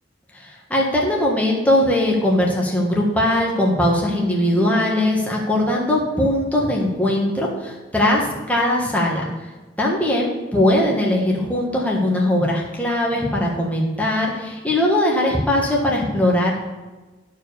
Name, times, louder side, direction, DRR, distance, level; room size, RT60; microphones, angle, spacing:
voice 1, 0.3-9.3 9.8-16.5, left 1 dB, 10° left, -3 dB, 1.5 m, -20 dB
11.5 x 4.7 x 6.8 m, 1.2 s
head